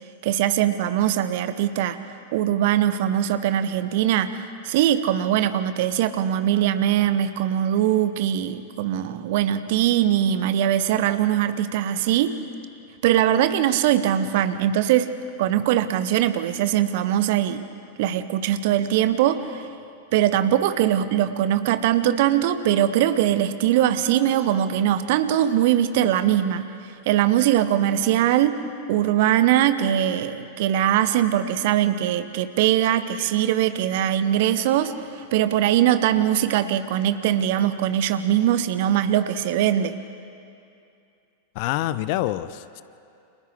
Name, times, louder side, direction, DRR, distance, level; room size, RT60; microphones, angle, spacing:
voice 1, 0.2-2.0 2.3-4.4 4.6-12.4 13.0-15.1 15.4-17.6 18.0-19.6 20.1-26.7 27.1-28.6 28.9-34.9 35.3-40.0, right 11 dB, 50° right, 12 dB, 0.9 m, -21 dB
voice 2, 41.5-42.8, left 15 dB, 45° left, 15 dB, 0.7 m, -26 dB
30.0 x 27.5 x 3.4 m, 2.6 s
figure-of-eight pair, 90°, 0 cm